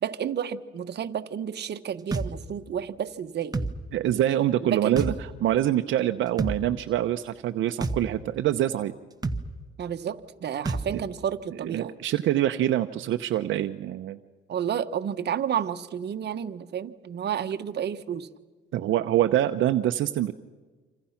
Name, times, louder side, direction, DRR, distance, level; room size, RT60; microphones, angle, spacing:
voice 1, 0.0-3.7 4.6-5.2 9.8-12.0 14.5-18.3, right 8 dB, 55° right, 8 dB, 1.3 m, -31 dB
sound 1, 2.1-2.3 3.5-3.7 5.0-5.2 6.4-6.6 7.8-8.0 9.2-9.4 10.7-10.9, right 3 dB, 20° right, 1.5 m, -27 dB
voice 2, 3.9-5.1 5.4-8.9 10.6-11.0 11.6-14.2 18.7-20.3, right 12 dB, 75° right, 7 dB, 0.9 m, -25 dB
27.5 x 27.0 x 5.9 m, 1.3 s
cardioid pair, 90°, 20 cm